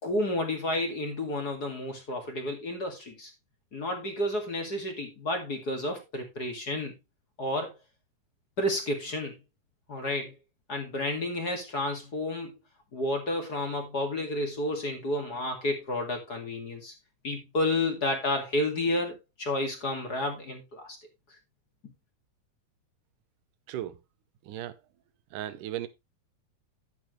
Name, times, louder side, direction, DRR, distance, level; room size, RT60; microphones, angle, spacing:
voice 1, 0.0-3.3 3.7-6.9 7.4-7.7 8.6-9.4 9.9-10.3 10.7-12.5 12.9-16.9 17.2-21.0, left 1 dB, 35° left, 2.3 m, -31 dB
voice 2, 23.7-24.0 24.4-24.8 25.3-25.9, right 13 dB, 85° right, 2.4 m, -36 dB
10.5 x 9.2 x 3.1 m
omnidirectional pair, 3.6 m